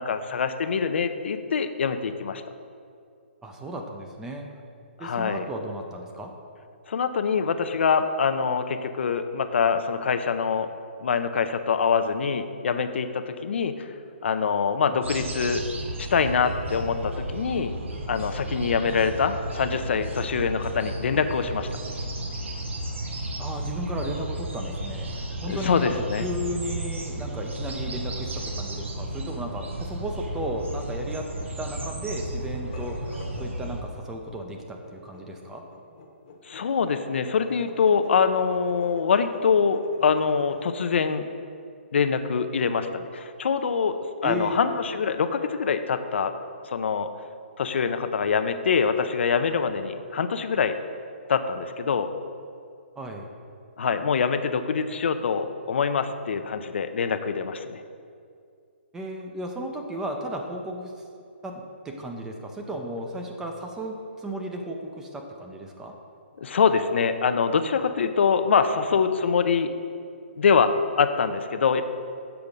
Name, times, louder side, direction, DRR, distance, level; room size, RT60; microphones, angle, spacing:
voice 1, 0.0-2.4 5.0-5.5 6.9-10.7 11.0-13.9 14.2-15.6 16.0-17.7 18.1-21.7 25.5-26.2 36.4-41.2 41.9-46.3 46.6-47.1 47.6-50.8 51.3-52.1 53.8-57.8 66.4-69.7 70.4-71.8, left 6 dB, 70° left, 9 dB, 0.5 m, -24 dB
voice 2, 3.4-4.5 5.0-6.3 14.9-15.0 23.4-25.1 25.4-33.0 33.4-35.6 44.2-44.6 53.0-53.3 58.9-60.9 61.4-65.9, right 1 dB, 10° right, 2 dB, 0.5 m, -34 dB
sound 1, 15.0-33.8, right 1 dB, 85° right, 1.0 m, -33 dB
sound 2, 32.6-40.8, left 3 dB, 40° left, 0.9 m, -45 dB
6.9 x 4.8 x 5.2 m, 2.3 s
hypercardioid pair, 155°, 7 cm